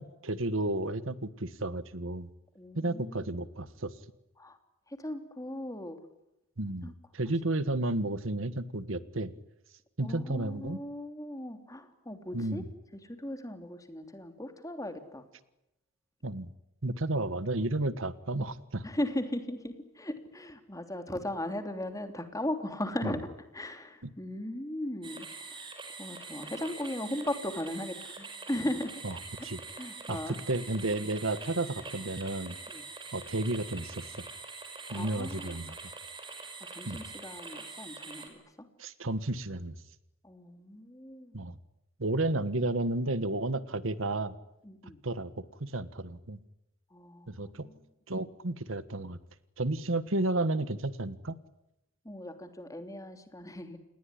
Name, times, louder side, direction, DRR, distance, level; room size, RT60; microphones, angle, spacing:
voice 1, 0.0-2.3 2.7-3.9 6.6-9.3 10.0-10.8 12.3-12.6 16.2-16.5 16.8-18.8 23.0-23.1 24.0-24.1 29.0-29.1 29.4-29.6 30.1-32.5 33.1-34.0 34.9-35.8 36.9-37.0 38.8-39.7 41.3-41.6 42.0-44.3 45.0-45.3 45.6-46.4 47.3-47.7 48.1-49.2 49.6-51.4, right 2 dB, 75° right, 15 dB, 1.4 m, -32 dB
voice 2, 2.5-3.4 4.4-4.6 4.9-6.0 6.8-6.9 10.0-12.6 13.0-15.2 18.8-23.3 23.5-25.7 26.0-29.0 29.4-29.5 29.7-30.4 32.7-32.8 34.9-35.7 36.7-38.4 40.2-41.4 44.6-45.0 46.9-47.7 52.0-53.8, left 1 dB, 15° left, 7 dB, 3.1 m, -38 dB
sound 1, 25.0-38.3, right 4 dB, 25° right, 5.7 m, -44 dB
29.0 x 20.5 x 10.0 m, 0.87 s
head